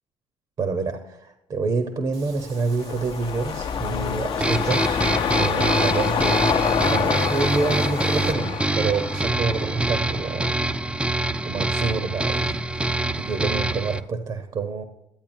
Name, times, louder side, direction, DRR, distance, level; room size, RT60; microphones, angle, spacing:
voice 1, 0.6-5.0 5.3-6.5 6.9-10.5 11.4-14.8, right 4 dB, 50° right, 8 dB, 0.9 m, -27 dB
Meow / Water / Bathtub (filling or washing), 2.1-8.3, right 4 dB, 80° right, 1.2 m, -46 dB
sound 1, 2.4-10.8 11.2-11.3, left 7 dB, 55° left, 0.6 m, -27 dB
sound 2, 4.4-14.0, right 2 dB, 10° right, 0.5 m, -25 dB
12.0 x 8.5 x 2.7 m, 0.83 s
supercardioid pair, 75°, 10 cm